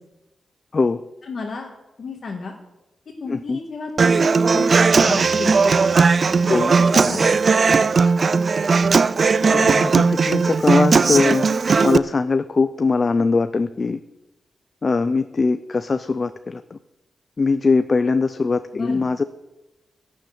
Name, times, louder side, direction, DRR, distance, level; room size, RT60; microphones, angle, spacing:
voice 1, 1.3-1.7 2.0-2.5 3.2-5.9 6.5-7.4 18.7-19.0, left 4 dB, 55° left, -1 dB, 1.7 m, -32 dB
voice 2, 3.3-3.6 6.4-6.7 9.4-14.0 14.8-16.8 17.4-19.2, left 4 dB, 35° left, 11 dB, 0.4 m, -21 dB
Human voice / Acoustic guitar, 4.0-12.0, right 4 dB, 45° right, 0.4 m, -17 dB
11.5 x 7.1 x 7.9 m, 0.99 s
wide cardioid pair, 115°, 0 cm